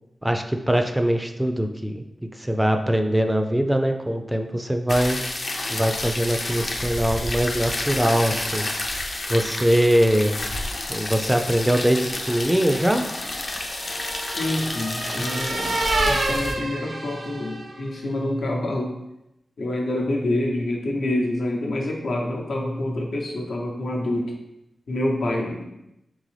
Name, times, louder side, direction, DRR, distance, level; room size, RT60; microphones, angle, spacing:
voice 1, 0.2-2.0 2.4-5.2 5.7-8.7 9.3-10.5 10.9-13.0 15.2-15.3, equal, 10° right, 5 dB, 0.3 m, -22 dB
sound 1, 4.9-16.5, left 2 dB, 50° left, 0.5 m, -30 dB
sound 2, 12.4-17.9, right 2 dB, 80° right, 0.5 m, -29 dB
voice 2, 14.3-19.0 19.6-24.3 24.9-25.6, left 1 dB, 85° left, -1 dB, 0.7 m, -27 dB
3.8 x 3.4 x 3.2 m, 0.87 s
wide cardioid pair, 90°, 0 cm